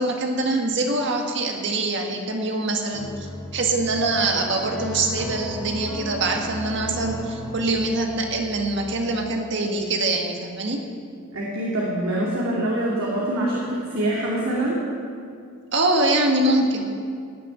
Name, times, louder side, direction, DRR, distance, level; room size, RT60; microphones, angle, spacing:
voice 1, 0.0-3.3 3.5-10.8 15.7-16.9, right 2 dB, 55° right, 2 dB, 1.8 m, -24 dB
sound 1, 2.9-9.3, equal, 5° left, 2.3 m, -35 dB
voice 2, 11.3-14.8, right 1 dB, 85° right, -5 dB, 2.8 m, -25 dB
17.0 x 6.8 x 9.5 m, 2.2 s
head